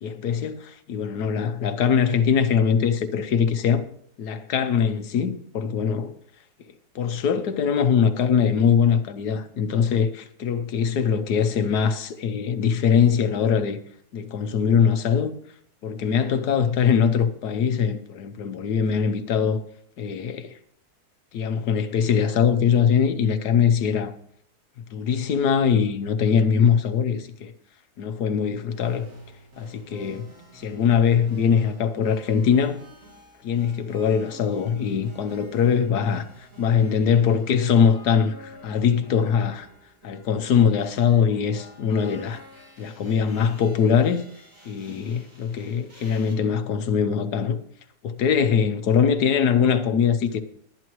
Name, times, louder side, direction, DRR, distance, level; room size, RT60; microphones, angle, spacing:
voice 1, 0.0-3.8 4.2-6.1 6.9-13.8 14.1-15.3 15.8-19.6 20.0-20.5 21.3-24.1 24.9-27.5 28.0-29.1 29.6-30.3 30.5-32.8 33.4-39.7 40.0-42.4 42.8-44.2 44.6-47.6 48.0-50.4, left 7 dB, 90° left, 1.5 m, -22 dB
sound 1, 28.7-46.4, right 1 dB, 55° right, 3.2 m, -49 dB
20.5 x 9.8 x 3.1 m
omnidirectional pair, 1.7 m